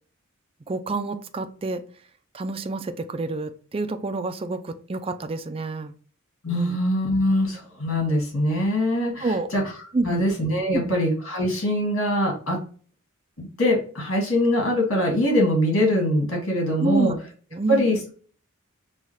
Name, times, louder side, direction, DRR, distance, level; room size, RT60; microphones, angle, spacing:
voice 1, 0.7-1.8 2.3-5.9 6.5-6.8 9.2-9.5 9.9-10.3 10.7-10.9 16.8-17.2 17.5-18.0, right 3 dB, 25° right, 8 dB, 0.4 m, -28 dB
voice 2, 6.4-9.6 10.0-12.6 13.4-17.1 17.7-18.1, left 1 dB, 75° left, 0 dB, 2.2 m, -23 dB
5.5 x 2.4 x 3.1 m, 0.41 s
head